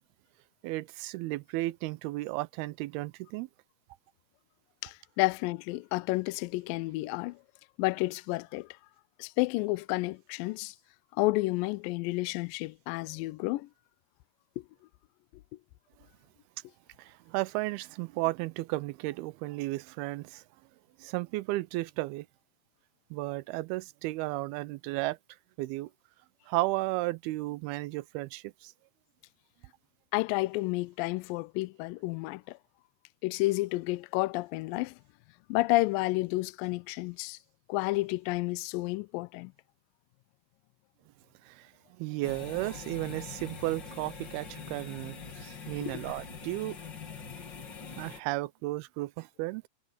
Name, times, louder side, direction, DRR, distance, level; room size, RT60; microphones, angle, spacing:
voice 1, 0.6-3.5 17.0-20.4 21.0-22.3 23.1-25.2 25.6-25.9 26.5-28.7 41.4-46.8 47.2-47.3 48.0-49.7, right 19 dB, 85° right, 2.6 m, -34 dB
voice 2, 4.8-7.4 7.8-8.8 9.2-10.8 11.1-13.7 14.6-14.7 30.1-32.6 33.2-35.0 35.5-37.4 37.7-39.5 45.8-46.0, left 21 dB, 80° left, 2.1 m, -30 dB
sound 1, 42.2-48.2, left 5 dB, 35° left, 2.3 m, -44 dB
omnidirectional pair, 4.4 m